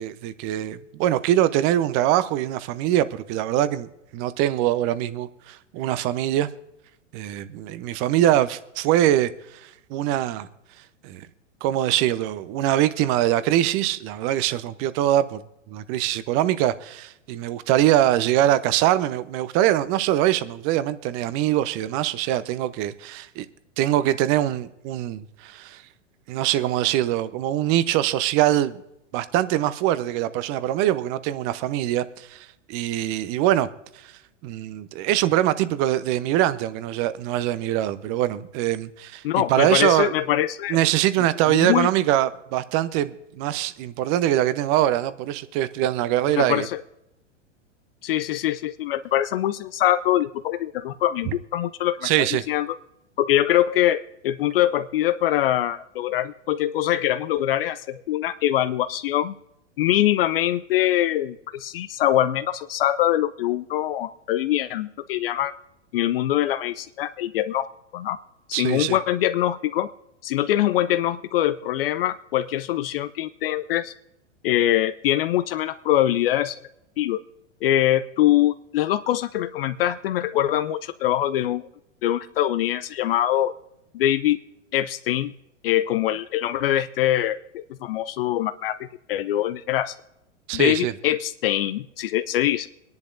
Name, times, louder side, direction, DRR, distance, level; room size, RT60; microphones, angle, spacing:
voice 1, 0.0-6.5 7.1-9.3 9.9-10.5 11.0-11.3 11.6-23.5 23.8-25.8 26.3-28.8 29.1-33.7 34.4-40.1 40.7-46.7 52.0-52.5 68.5-69.0 90.5-90.9, right 13 dB, 35° right, 0.8 m, -23 dB
voice 2, 39.2-40.8 41.5-41.9 46.4-46.8 48.0-52.8 53.2-59.3 59.8-65.5 65.9-67.7 67.9-68.2 68.5-69.9 70.2-73.9 74.4-76.6 77.0-77.2 77.6-81.7 82.0-83.5 83.9-84.4 84.7-85.3 85.6-89.9 90.5-92.7, left 13 dB, 50° left, 0.5 m, -23 dB
24.5 x 10.5 x 2.6 m
figure-of-eight pair, 100°, 37 cm